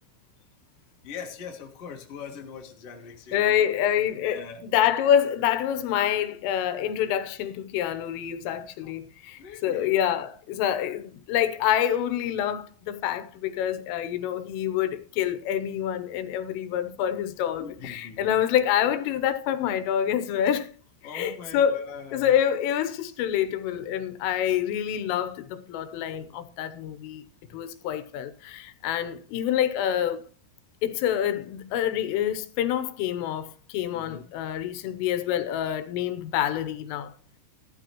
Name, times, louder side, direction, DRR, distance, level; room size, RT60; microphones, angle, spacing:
voice 1, 1.0-3.6 4.2-4.7 8.8-8.9 9.4-10.0 17.6-18.4 21.0-22.3 27.5-27.6 33.9-34.3, left 6 dB, 55° left, 1.7 m, -41 dB
voice 2, 3.3-20.7 21.0-27.2 27.5-30.2 30.8-37.1, left 10 dB, 85° left, 3.5 m, -27 dB
15.0 x 13.0 x 3.0 m
omnidirectional pair, 5.8 m